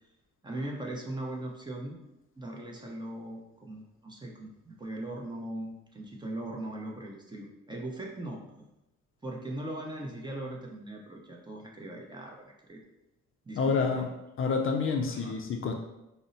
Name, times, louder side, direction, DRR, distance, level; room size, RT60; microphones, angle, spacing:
voice 1, 0.4-2.0 2.4-8.7 9.2-12.8 13.4-14.1 15.1-15.4, right 1 dB, 15° right, -1 dB, 0.7 m, -39 dB
voice 2, 13.6-14.1 14.4-15.7, left 5 dB, 45° left, 3 dB, 0.4 m, -28 dB
5.2 x 2.1 x 2.6 m, 0.92 s
cardioid pair, 90°, 30 cm